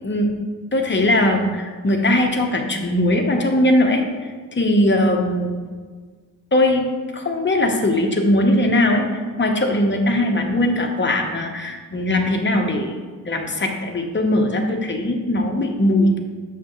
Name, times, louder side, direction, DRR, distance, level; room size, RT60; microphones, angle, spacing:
voice 1, 0.7-5.6 6.5-9.0 9.4-13.0 13.3-16.2, left 1 dB, 30° left, 2 dB, 0.9 m, -20 dB
8.1 x 6.4 x 3.1 m, 1.5 s
wide cardioid pair, 95°, 38 cm